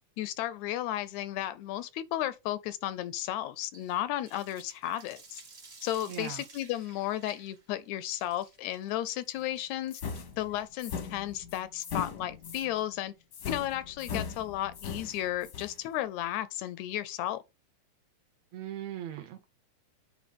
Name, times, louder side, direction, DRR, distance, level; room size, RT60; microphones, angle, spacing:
voice 1, 0.2-5.4 5.8-10.0 10.4-13.1 13.5-17.4, left 13 dB, 80° left, 1.7 m, -34 dB
Water tap faucet, 3.7-12.7, right 4 dB, 50° right, 0.7 m, -55 dB
voice 2, 6.1-6.4 18.5-19.4, right 11 dB, 70° right, 1.8 m, -39 dB
sound 1, 9.9-12.7 13.3-15.8, left 6 dB, 65° left, 1.0 m, -39 dB
9.2 x 3.1 x 5.1 m
omnidirectional pair, 3.5 m